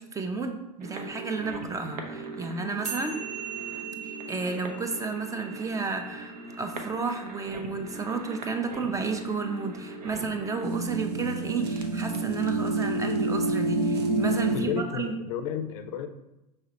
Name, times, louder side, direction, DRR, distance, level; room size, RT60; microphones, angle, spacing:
voice 1, 0.0-3.2 4.0-15.2, right 4 dB, 15° right, 6 dB, 0.4 m, -32 dB
sound 1, 0.8-14.6, right 2 dB, 70° right, 0.7 m, -32 dB
sound 2, 2.9-9.4, right 7 dB, 40° right, 1.0 m, -42 dB
voice 2, 14.5-16.1, left 7 dB, 55° left, 9 dB, 0.4 m, -32 dB
5.6 x 3.2 x 2.8 m, 0.93 s
figure-of-eight pair, 85°, 21 cm